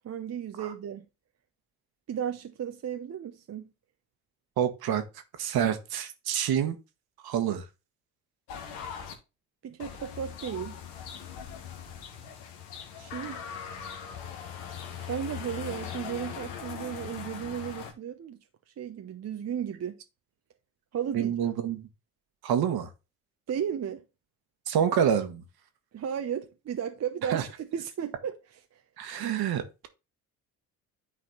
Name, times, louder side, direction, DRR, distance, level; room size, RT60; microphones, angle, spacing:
voice 1, 0.0-1.1 2.1-3.7 5.5-5.8 9.6-10.8 13.0-13.4 15.1-18.4 18.7-20.0 20.9-21.5 23.5-24.0 25.9-28.3 28.7-28.8, right 8 dB, 35° right, 0.9 m, -34 dB
voice 2, 4.6-5.0 5.4-6.8 7.2-7.7 21.1-21.9 22.4-22.9 24.7-25.4 27.3-27.4 29.0-29.9, right 9 dB, 55° right, 1.6 m, -27 dB
sound 1, 8.5-9.1 9.8-17.9, left 8 dB, 70° left, 1.6 m, -40 dB
9.9 x 4.1 x 4.0 m
hypercardioid pair, 55°, 43 cm